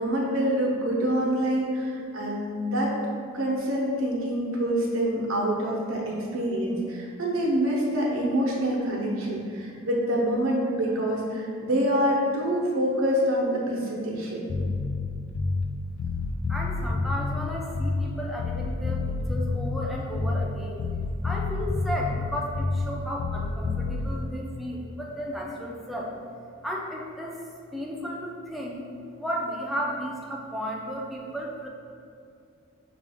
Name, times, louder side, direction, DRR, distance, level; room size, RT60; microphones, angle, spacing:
voice 1, 0.0-2.9 3.3-14.6, equal, 80° right, -4 dB, 0.8 m, -26 dB
Bass guitar, 14.5-15.7 16.0-18.1 18.4-20.5 20.8-22.9 23.2-24.1, left 3 dB, 75° left, 0.4 m, -28 dB
voice 2, 16.5-20.8 21.2-26.2 26.6-27.4 27.7-28.8 29.2-31.7, equal, ahead, -3 dB, 0.4 m, -34 dB
6.0 x 2.5 x 3.5 m, 2.4 s
head